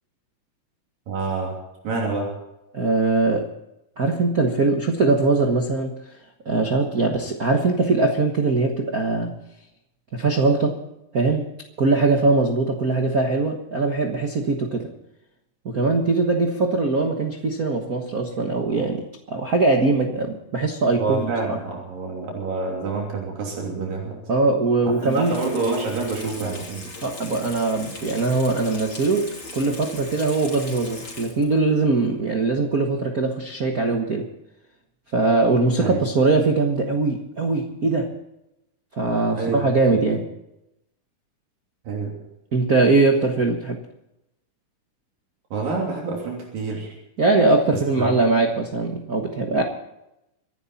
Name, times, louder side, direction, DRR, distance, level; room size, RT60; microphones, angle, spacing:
voice 1, 1.1-1.5 1.8-2.3 21.0-24.2 24.9-26.9 35.8-36.0 39.4-39.6 39.9-40.0 41.8-42.1 45.5-46.9 48.0-48.5, right 4 dB, 85° right, -1 dB, 4.8 m, -27 dB
voice 2, 2.7-3.5 4.0-6.0 6.4-9.4 10.1-10.8 11.1-11.5 11.8-14.9 15.6-21.6 24.3-25.4 27.0-34.3 35.1-38.1 38.9-40.3 42.5-43.8 47.2-49.6, right 3 dB, 60° right, 3 dB, 0.9 m, -21 dB
Water tap faucet / Sink (filling or washing), 24.9-31.7 32.0-32.1, left 3 dB, 35° left, 3.8 m, -39 dB
25.5 x 11.0 x 4.2 m, 0.88 s
omnidirectional pair, 3.8 m